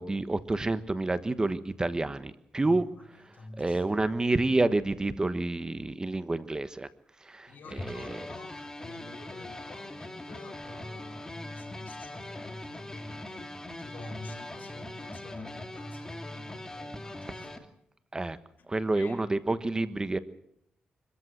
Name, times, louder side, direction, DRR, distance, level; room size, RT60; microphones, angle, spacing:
voice 1, 0.0-2.9 3.6-6.9 7.2-8.3 18.1-18.4 18.7-20.2, right 2 dB, 20° right, 1.2 m, -29 dB
voice 2, 2.6-3.8 7.5-17.5 18.6-18.7 18.9-19.2, left 2 dB, 65° left, 4.8 m, -47 dB
sound 1, 7.8-17.6, left 1 dB, 15° left, 2.5 m, -42 dB
25.0 x 14.0 x 7.9 m
cardioid pair, 85°, 3 cm